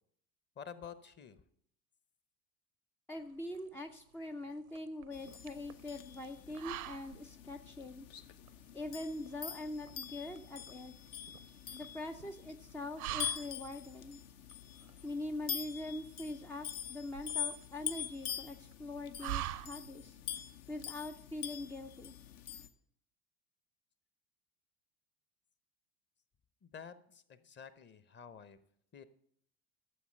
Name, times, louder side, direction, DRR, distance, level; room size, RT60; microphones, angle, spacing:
voice 1, 0.6-1.5 26.6-28.6 28.9-29.0, left 7 dB, 25° left, 13 dB, 0.9 m, -50 dB
voice 2, 3.1-8.1 8.7-10.9 11.7-14.2 15.0-20.2 20.7-22.1, left 2 dB, 5° left, 6 dB, 0.3 m, -43 dB
sound 1, 3.2-20.2, right 13 dB, 75° right, 0.7 m, -47 dB
sound 2, 5.1-22.7, left 9 dB, 55° left, 1.0 m, -44 dB
12.5 x 7.3 x 5.4 m, 0.68 s
figure-of-eight pair, 70°, 44 cm